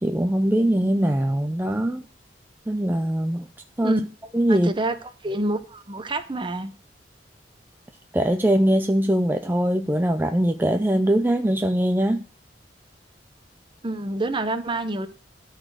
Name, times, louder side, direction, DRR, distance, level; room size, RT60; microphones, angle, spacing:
voice 1, 0.0-2.0 2.7-3.5 3.8-3.9 4.3-4.7 8.1-12.2, right 1 dB, 10° right, 0.5 m, -22 dB
voice 2, 4.5-5.0 5.2-6.7 13.8-15.1, right 2 dB, 30° right, 0.8 m, -27 dB
12.0 x 4.2 x 6.4 m
head